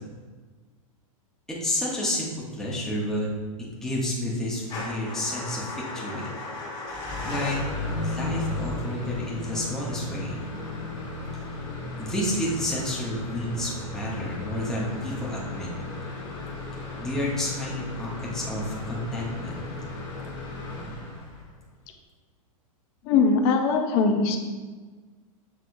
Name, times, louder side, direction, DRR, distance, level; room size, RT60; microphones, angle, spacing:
voice 1, 1.5-3.3 3.8-5.7 5.9-6.3 7.2-7.6 8.0-10.4 12.0-15.7 17.0-19.6, left 1 dB, 5° left, -5 dB, 0.9 m, -30 dB
Motor vehicle (road) / Engine starting / Idling, 4.6-21.6, left 2 dB, 25° left, 1.4 m, -35 dB
voice 2, 23.1-24.4, left 4 dB, 45° left, 4 dB, 0.6 m, -21 dB
6.3 x 3.3 x 2.6 m, 1.4 s
hypercardioid pair, 125°, 18 cm